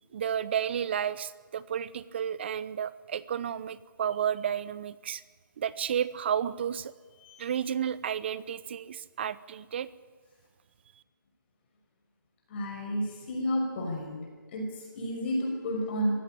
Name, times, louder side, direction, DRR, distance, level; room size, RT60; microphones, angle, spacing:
voice 1, 0.1-5.2 5.6-6.9 7.4-9.9, right 9 dB, 30° right, 17 dB, 0.8 m, -32 dB
voice 2, 12.5-14.2 14.5-16.1, equal, 30° left, 1 dB, 5.8 m, -31 dB
22.0 x 16.0 x 9.0 m, 1.5 s
figure-of-eight pair, 160°, 11 cm